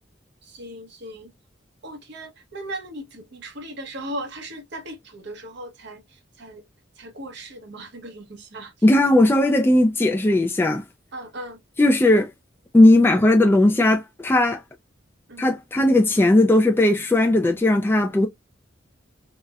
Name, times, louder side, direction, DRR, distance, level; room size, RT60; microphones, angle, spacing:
voice 1, 0.4-1.3 1.8-6.6 7.0-8.7 11.1-11.6 15.3-15.5, right 1 dB, 65° right, 0.9 m, -37 dB
voice 2, 8.8-10.8 11.8-12.3 12.7-14.6 15.4-18.3, left 1 dB, 10° left, 0.3 m, -17 dB
4.0 x 2.1 x 2.3 m
head